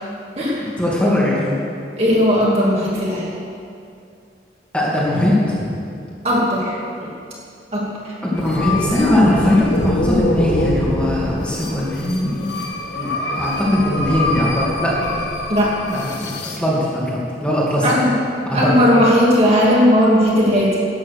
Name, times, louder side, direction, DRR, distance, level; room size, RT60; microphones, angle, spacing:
voice 1, 0.6-1.5 4.7-5.7 8.2-13.1 13.4-15.0 15.9-16.3 16.6-18.0 18.5-18.7, left 1 dB, 5° left, -7 dB, 2.3 m, -20 dB
voice 2, 2.0-3.3 6.2-7.1 7.7-8.2 15.5-15.8 17.8-20.8, equal, 35° right, -5 dB, 2.6 m, -17 dB
sound 1, 8.4-16.6, left 1 dB, 75° left, 1.6 m, -24 dB
12.5 x 9.2 x 6.6 m, 2.4 s
head